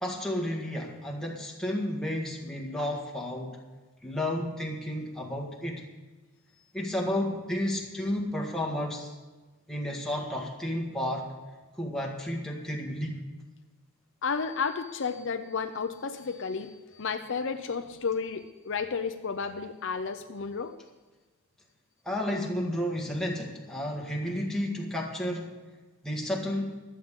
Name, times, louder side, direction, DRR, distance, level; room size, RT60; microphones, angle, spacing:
voice 1, 0.0-3.6 4.0-5.8 6.7-9.2 9.7-11.3 11.8-13.2 22.1-25.5 26.0-26.8, left 1 dB, ahead, -1 dB, 1.7 m, -32 dB
voice 2, 14.2-20.8, left 5 dB, 55° left, 8 dB, 0.6 m, -32 dB
24.0 x 8.4 x 3.7 m, 1.3 s
head